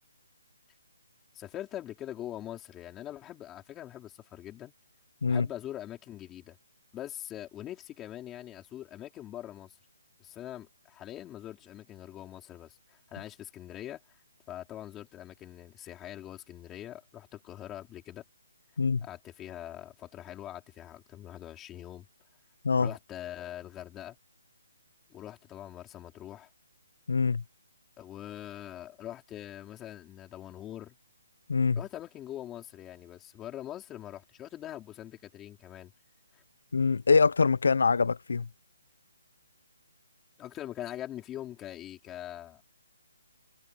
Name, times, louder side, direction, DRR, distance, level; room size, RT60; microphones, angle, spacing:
voice 1, 1.3-4.7 5.3-6.6 6.9-9.8 10.2-14.0 14.5-18.2 19.0-22.1 22.8-24.2 25.1-26.5 28.0-31.0 31.8-35.9 36.3-36.4 40.4-42.6, left 12 dB, 10° left, 4.5 m, -43 dB
voice 2, 27.1-27.4 31.5-31.8 36.7-38.5, left 4 dB, 70° left, 0.6 m, -24 dB
hypercardioid pair, 170°, 0 cm